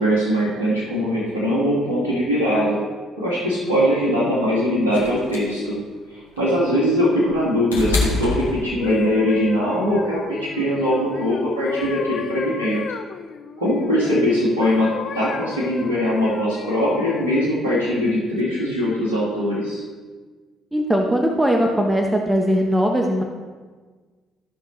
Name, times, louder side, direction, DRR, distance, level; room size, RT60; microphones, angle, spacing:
voice 1, 0.0-2.8 3.2-5.8 6.1-12.8 13.6-19.8, equal, 80° right, -7 dB, 1.6 m, -21 dB
sound 1, 4.9-9.2 10.4-10.5, left 3 dB, 80° left, 1.3 m, -27 dB
sound 2, 8.6-14.2 14.6-17.5 18.1-18.4, left 7 dB, 55° left, 0.5 m, -33 dB
voice 2, 20.7-23.2, equal, 15° right, 2 dB, 1.0 m, -19 dB
14.0 x 5.8 x 3.1 m, 1.4 s
figure-of-eight pair, 45°, 0 cm